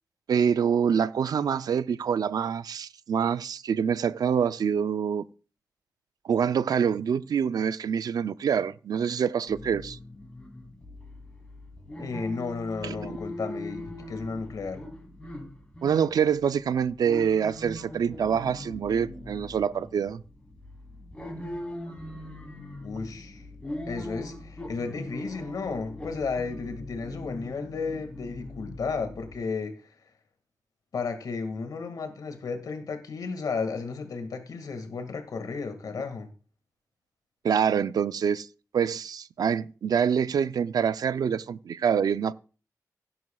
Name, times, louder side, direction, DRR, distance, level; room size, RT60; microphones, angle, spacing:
voice 1, 0.3-5.2 6.2-10.0 12.8-13.0 15.8-20.2 37.4-38.5 38.7-42.3, right 7 dB, 85° right, 0.4 m, -26 dB
sound 1, 9.5-29.4, left 1 dB, 20° left, 4.0 m, -41 dB
voice 2, 12.0-14.8 22.8-23.4 23.9-29.9 30.9-36.3, left 4 dB, 75° left, 1.9 m, -33 dB
16.5 x 11.0 x 2.3 m
wide cardioid pair, 170°, 6 cm